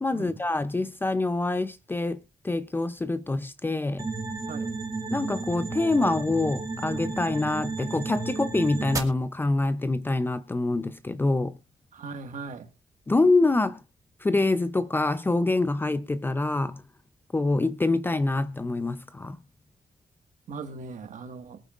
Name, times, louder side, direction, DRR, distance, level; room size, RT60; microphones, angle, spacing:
voice 1, 0.0-2.2 2.4-4.1 5.1-11.6 13.1-13.8 14.2-16.8 17.3-19.4, left 2 dB, 15° left, 0.5 m, -25 dB
sound 1, 4.0-9.0, right 3 dB, 25° right, 1.9 m, -33 dB
voice 2, 11.9-12.7 20.5-21.6, right 4 dB, 65° right, 1.7 m, -39 dB
22.5 x 9.1 x 2.4 m
wide cardioid pair, 160°, 14 cm